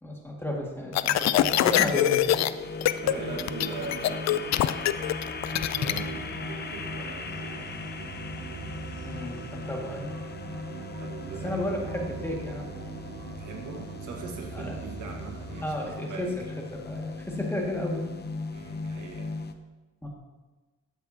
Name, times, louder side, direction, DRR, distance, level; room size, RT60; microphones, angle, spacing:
voice 1, 0.0-2.2 3.0-3.6 9.1-10.1 11.4-12.7 14.5-14.7 15.6-16.4 16.7-18.1 20.0-20.1, left 1 dB, 10° left, -1 dB, 2.1 m, -33 dB
sound 1, 0.9-2.5 2.8-3.1 3.4-6.0, left 12 dB, 60° left, 0.5 m, -23 dB
sound 2, 1.4-19.5, left 4 dB, 35° left, 0.8 m, -38 dB
sound 3, 3.0-15.6, right 7 dB, 55° right, 0.7 m, -42 dB
voice 2, 3.0-5.2 5.5-7.9 11.0-11.7 13.4-16.3 18.5-19.3, right 4 dB, 75° right, 1 dB, 1.8 m, -42 dB
13.0 x 8.1 x 2.9 m, 1.2 s
cardioid pair, 90°, 30 cm